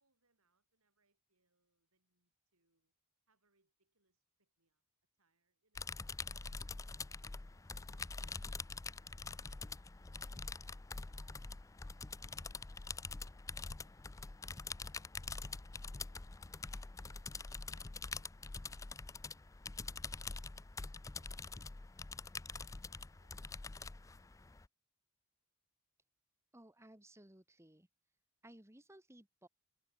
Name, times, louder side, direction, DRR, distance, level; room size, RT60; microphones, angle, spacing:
voice 1, 0.0-2.9 3.3-4.8 5.2-6.0 6.5-8.2 9.0-11.7 13.8-14.8 15.5-16.5 16.9-22.0 22.5-24.3, right 3 dB, 75° right, 7.2 m, -82 dB
sound 1, 5.8-24.7, left 4 dB, 15° left, 0.4 m, -45 dB
voice 2, 26.5-27.9 28.4-29.5, right 1 dB, 10° right, 1.7 m, -59 dB
head